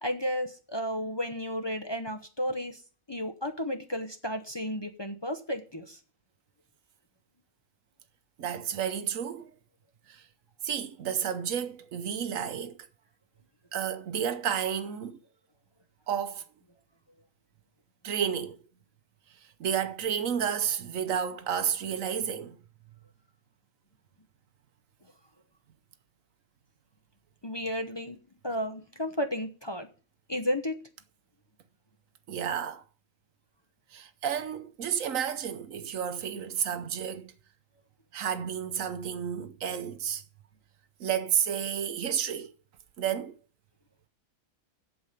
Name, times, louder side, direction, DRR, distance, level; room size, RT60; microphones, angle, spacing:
voice 1, 0.0-2.8 3.1-6.0 27.4-28.2 28.4-29.9 30.3-30.8, equal, 25° left, 0.8 m, -33 dB
voice 2, 8.4-9.5 10.1-10.3 10.6-12.8 13.7-15.2 16.1-16.4 18.0-18.6 19.6-22.6 32.3-32.8 33.9-37.3 38.1-40.2 41.0-42.5 43.0-43.4, right 8 dB, 75° right, 1.2 m, -31 dB
8.4 x 7.3 x 6.8 m
omnidirectional pair, 1.4 m